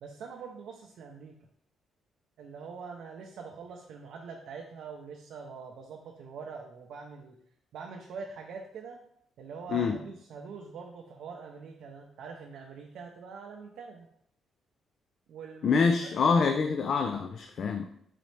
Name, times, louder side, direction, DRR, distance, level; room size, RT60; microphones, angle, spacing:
voice 1, 0.0-1.4 2.4-7.4 7.7-9.0 9.4-14.1 15.3-15.8 16.3-16.6, right 5 dB, 75° right, 1 dB, 0.5 m, -44 dB
voice 2, 15.6-17.8, left 5 dB, 60° left, 5 dB, 0.4 m, -26 dB
4.1 x 4.0 x 3.2 m, 0.70 s
cardioid pair, 90°, 0 cm